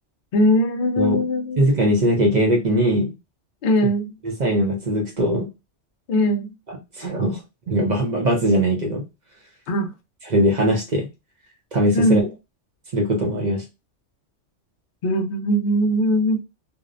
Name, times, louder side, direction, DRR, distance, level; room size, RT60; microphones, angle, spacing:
voice 1, 0.3-1.6 3.6-4.1 6.1-6.5 9.7-9.9 11.9-12.3 15.0-16.4, equal, 60° left, 0.6 m, -20 dB
voice 2, 1.6-3.1 4.2-5.5 7.0-7.4 7.7-9.0 10.3-11.1 11.7-12.3 12.9-13.6, equal, 50° right, 0.6 m, -20 dB
2.6 x 2.0 x 2.4 m
omnidirectional pair, 1.2 m